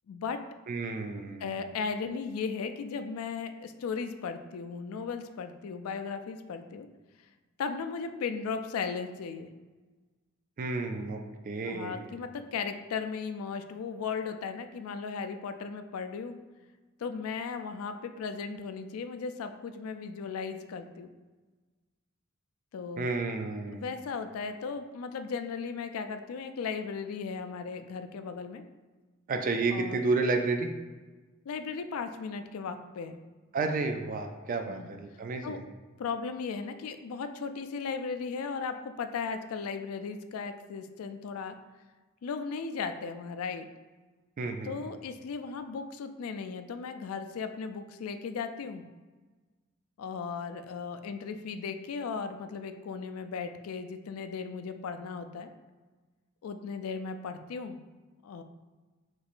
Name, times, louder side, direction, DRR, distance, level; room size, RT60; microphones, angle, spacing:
voice 1, 0.1-0.4 1.4-6.9 7.6-9.5 11.7-16.4 17.0-21.1 22.7-23.2 23.7-28.6 29.7-30.0 31.5-33.2 34.7-34.9 35.4-35.6 36.0-41.6 42.2-43.7 44.6-48.8 50.0-55.5 56.4-57.8 58.2-58.4, left 5 dB, 85° left, 8 dB, 0.3 m, -36 dB
voice 2, 0.7-1.6 10.6-11.2 11.4-12.1 23.0-23.9 29.3-30.7 33.5-35.6 44.4-44.9, right 3 dB, 40° right, 5 dB, 0.4 m, -31 dB
4.5 x 3.1 x 2.4 m, 1.3 s
head